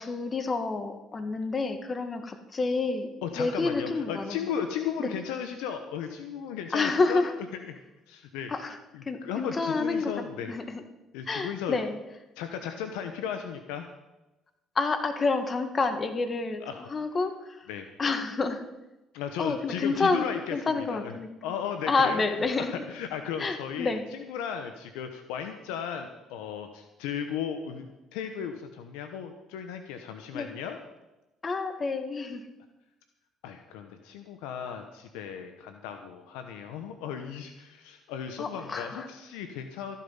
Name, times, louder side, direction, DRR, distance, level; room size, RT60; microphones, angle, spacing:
voice 1, 0.0-3.1 3.4-4.4 5.0-5.1 6.7-7.3 8.5-8.7 9.1-10.8 11.3-12.0 14.8-16.6 16.9-17.7 18.0-18.6 19.4-21.3 21.9-22.7 23.4-24.0 30.3-30.5 31.4-32.4 38.4-39.1, left 3 dB, 35° left, 8 dB, 1.7 m, -28 dB
voice 2, 3.2-7.2 7.6-7.8 8.1-8.5 8.9-10.5 11.1-11.8 12.4-13.9 16.6-16.8 17.7-17.9 19.1-21.1 21.4-30.8 33.4-40.0, left 8 dB, 85° left, 7 dB, 1.1 m, -36 dB
14.0 x 11.5 x 5.6 m, 1.0 s
supercardioid pair, 70°, 0 cm